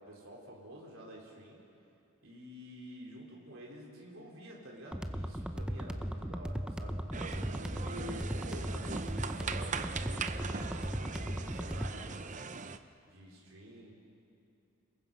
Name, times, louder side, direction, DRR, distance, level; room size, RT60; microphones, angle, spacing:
voice 1, 0.0-1.6 2.2-7.0 7.5-12.5 13.1-13.9, equal, 70° right, -3 dB, 4.1 m, -49 dB
sound 1, 4.9-11.9, equal, 5° right, 0.7 m, -37 dB
sound 2, 7.1-12.8, right 5 dB, 35° right, 0.7 m, -40 dB
29.5 x 21.0 x 5.6 m, 2.7 s
head